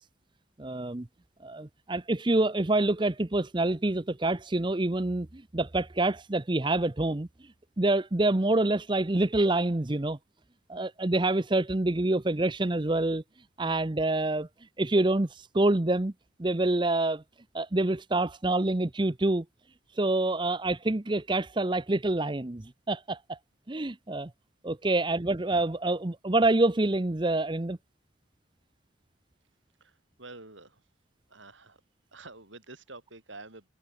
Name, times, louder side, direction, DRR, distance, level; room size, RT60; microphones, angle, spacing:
voice 1, 0.6-1.1 1.4-7.3 7.8-10.2 10.7-13.2 13.6-14.5 14.8-16.1 16.4-17.2 17.5-19.4 20.0-23.4 23.7-24.3 24.6-27.8, right 2 dB, 25° right, 0.7 m, -27 dB
voice 2, 29.8-30.8 31.3-31.8 32.1-33.7, right 2 dB, 70° right, 7.5 m, -48 dB
head